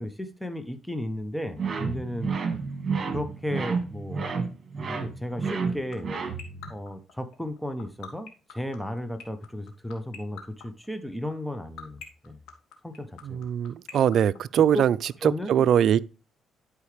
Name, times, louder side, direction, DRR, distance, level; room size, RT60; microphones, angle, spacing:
voice 1, 0.0-2.3 3.1-4.2 4.9-6.1 6.7-12.4 12.8-13.4 14.6-14.8 15.2-15.7, left 1 dB, 5° left, 0.8 m, -34 dB
sound 1, 1.6-6.7, right 5 dB, 40° right, 1.8 m, -30 dB
sound 2, 5.5-15.1, left 8 dB, 85° left, 1.6 m, -41 dB
voice 2, 13.2-15.0 15.5-16.0, right 9 dB, 70° right, 0.4 m, -22 dB
11.5 x 4.8 x 3.3 m
cardioid pair, 90°, 0 cm